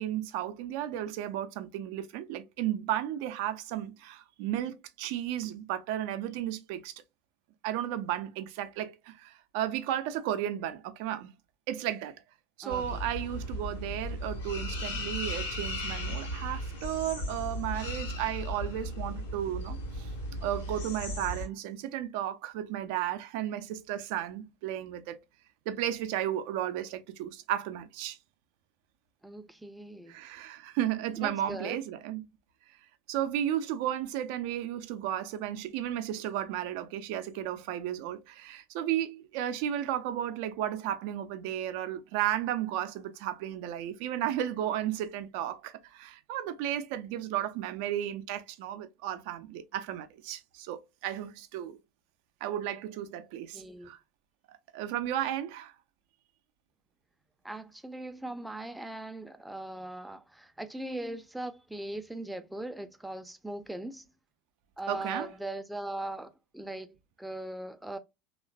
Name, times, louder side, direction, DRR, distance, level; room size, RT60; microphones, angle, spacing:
voice 1, 0.0-6.9 7.6-11.3 11.7-12.2 12.6-20.1 20.4-25.2 25.7-28.2 30.1-32.3 33.1-51.8 52.4-54.0 54.5-55.7 64.9-65.3, right 11 dB, 60° right, 0.4 m, -34 dB
voice 2, 12.6-13.0 29.2-30.1 31.2-31.8 53.5-53.9 57.4-64.1 64.8-68.0, right 1 dB, 5° right, 0.5 m, -40 dB
sound 1, 12.7-21.5, equal, 75° left, 0.9 m, -36 dB
3.1 x 2.4 x 2.2 m
figure-of-eight pair, 75°, 0 cm